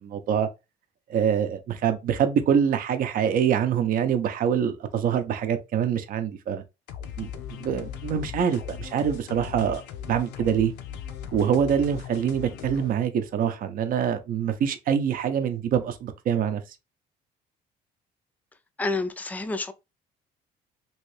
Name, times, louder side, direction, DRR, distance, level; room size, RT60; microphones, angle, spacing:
voice 1, 0.0-0.5 1.1-6.6 7.2-9.8 10.1-10.7 11.3-16.6, right 8 dB, 55° right, 0.6 m, -25 dB
sound 1, 6.9-12.9, left 8 dB, 85° left, 0.5 m, -38 dB
voice 2, 18.8-19.7, left 3 dB, 10° left, 0.4 m, -29 dB
3.1 x 2.7 x 3.1 m
cardioid pair, 110°, 17 cm